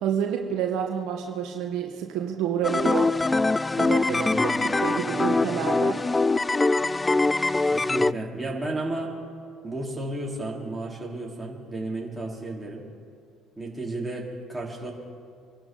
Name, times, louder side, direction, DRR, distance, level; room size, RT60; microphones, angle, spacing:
voice 1, 0.0-3.2 3.8-6.1, right 8 dB, 65° right, 3 dB, 1.3 m, -29 dB
sound 1, 2.6-8.1, left 3 dB, 20° left, 0.3 m, -23 dB
voice 2, 4.1-4.6 7.6-9.1 9.6-12.8 13.6-14.9, right 2 dB, 10° right, -3 dB, 4.0 m, -33 dB
26.0 x 12.0 x 4.0 m, 2.2 s
hypercardioid pair, 60°, 0 cm